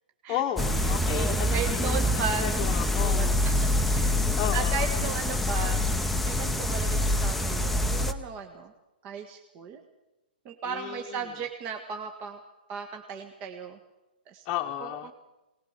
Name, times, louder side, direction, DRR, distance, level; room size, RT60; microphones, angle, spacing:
voice 1, 0.3-2.0 2.4-3.4 4.3-4.9 10.6-11.3 14.4-15.1, left 11 dB, 25° left, -1 dB, 1.2 m, -33 dB
sound 1, 0.6-8.1, left 1 dB, ahead, 0.9 m, -26 dB
voice 2, 1.1-2.5 2.7-5.9 6.3-8.7 9.0-9.8 10.4-12.4 12.7-13.8 14.3-14.4 14.8-14.9, right 6 dB, 30° right, 4 dB, 1.7 m, -36 dB
20.0 x 19.5 x 6.8 m, 1.0 s
hypercardioid pair, 145°, 5 cm